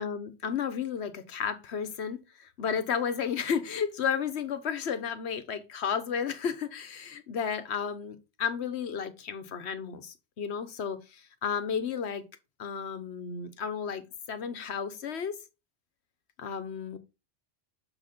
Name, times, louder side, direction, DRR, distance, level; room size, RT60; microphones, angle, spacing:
voice 1, 0.0-12.3 12.6-15.4 16.4-17.0, left 7 dB, 80° left, 1.2 m, -33 dB
6.8 x 5.1 x 4.2 m
omnidirectional pair, 1.1 m